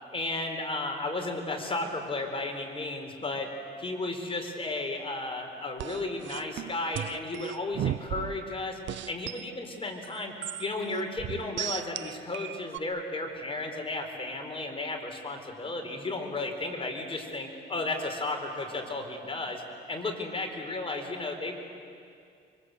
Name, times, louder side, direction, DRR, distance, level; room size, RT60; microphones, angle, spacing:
voice 1, 0.1-3.5 3.8-8.8 9.1-19.6 19.9-21.6, left 2 dB, 25° left, 3 dB, 4.3 m, -34 dB
sound 1, 5.8-8.5 8.9-9.5 10.0-12.8, right 12 dB, 70° right, 0.7 m, -35 dB
26.0 x 24.0 x 8.2 m, 2.3 s
cardioid pair, 90°, 20 cm